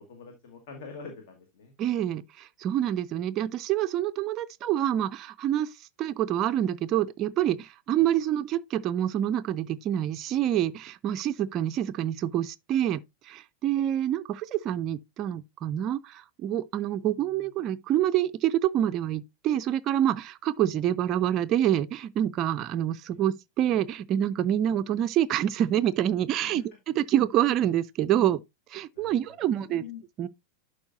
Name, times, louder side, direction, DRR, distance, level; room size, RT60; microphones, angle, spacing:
voice 1, 0.0-1.7 17.3-17.5 23.1-23.2 26.4-26.6 28.9-29.2 29.6-30.0, left 5 dB, 50° left, 1.5 m, -44 dB
voice 2, 1.8-5.7 6.0-26.6 27.0-28.4 28.7-29.8 30.2-30.3, right 11 dB, 35° right, 0.3 m, -27 dB
11.5 x 4.7 x 2.6 m
figure-of-eight pair, 90°, 0 cm